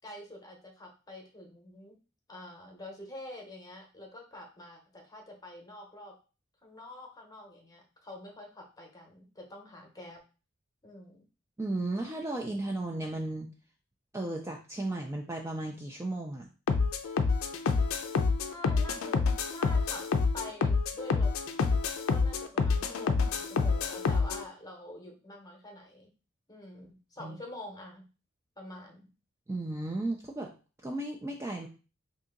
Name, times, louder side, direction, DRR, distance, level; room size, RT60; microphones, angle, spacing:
voice 1, 0.0-2.0 2.3-6.1 6.6-10.2 10.8-11.2 18.5-19.2 19.5-21.3 22.1-26.1 26.5-28.1 28.6-29.1, left 1 dB, 20° left, 1 dB, 0.9 m, -46 dB
voice 2, 11.6-13.5 14.1-16.5 27.2-27.4 29.5-30.5 30.8-31.7, right 2 dB, 15° right, 1 dB, 0.3 m, -34 dB
sound 1, 16.7-24.4, left 4 dB, 80° left, 0.4 m, -28 dB
2.7 x 2.7 x 3.7 m, 0.34 s
head